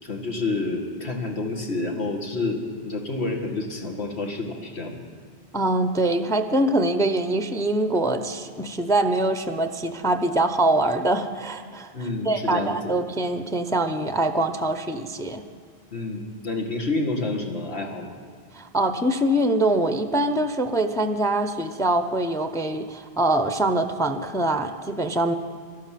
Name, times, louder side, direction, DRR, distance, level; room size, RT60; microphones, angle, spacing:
voice 1, 0.0-5.0 11.9-12.8 15.9-18.2, left 2 dB, 90° left, 2 dB, 2.0 m, -29 dB
voice 2, 5.5-11.9 12.2-15.4 18.5-25.3, right 1 dB, 5° left, 8 dB, 0.5 m, -24 dB
13.0 x 12.0 x 7.5 m, 2.1 s
omnidirectional pair, 1.1 m